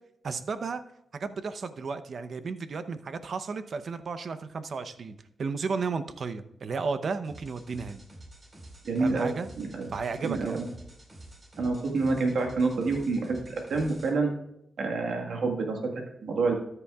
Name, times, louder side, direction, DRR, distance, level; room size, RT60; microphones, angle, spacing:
voice 1, 0.2-0.8 1.1-8.0 9.0-9.5 9.9-10.6, right 4 dB, 65° right, 11 dB, 0.7 m, -33 dB
sound 1, 7.2-14.1, right 1 dB, 45° right, 4.3 m, -49 dB
voice 2, 8.8-9.9 10.2-10.7 11.6-14.3 14.8-16.5, right 3 dB, 80° right, 2 dB, 1.6 m, -28 dB
13.5 x 9.9 x 2.4 m, 0.77 s
cardioid pair, 65°, 0 cm